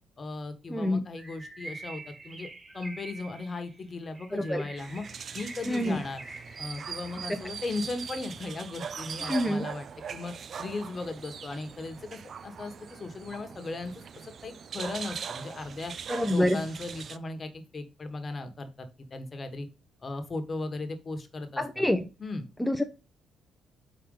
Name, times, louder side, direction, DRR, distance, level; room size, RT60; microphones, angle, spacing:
voice 1, 0.2-2.5 2.7-5.0 5.3-6.2 6.6-15.9 16.3-19.7 20.0-21.8 22.2-22.4, left 3 dB, 35° left, 7 dB, 1.3 m, -37 dB
voice 2, 0.7-1.0 4.3-4.6 5.7-6.0 7.3-7.4 9.3-9.6 16.1-16.6 21.6-22.1 22.6-22.8, left 1 dB, 5° left, 5 dB, 0.6 m, -26 dB
Bird, 1.2-7.5, right 2 dB, 25° right, 1.4 m, -46 dB
sound 1, 4.8-17.2, right 7 dB, 55° right, 0.4 m, -41 dB
5.2 x 4.2 x 5.4 m, 0.31 s
cardioid pair, 90°, 0 cm